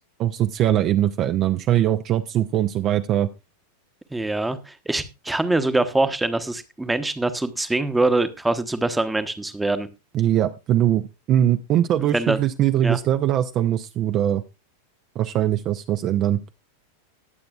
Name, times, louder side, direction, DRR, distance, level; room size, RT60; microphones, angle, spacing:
voice 1, 0.0-3.3 10.1-11.0 11.3-14.4 15.2-16.4, right 11 dB, 35° right, 10 dB, 0.5 m, -21 dB
voice 2, 4.1-9.9 12.1-12.4 12.8-13.0, right 2 dB, 5° right, 11 dB, 0.9 m, -23 dB
19.5 x 7.8 x 2.4 m, 0.26 s
figure-of-eight pair, 90°, 0 cm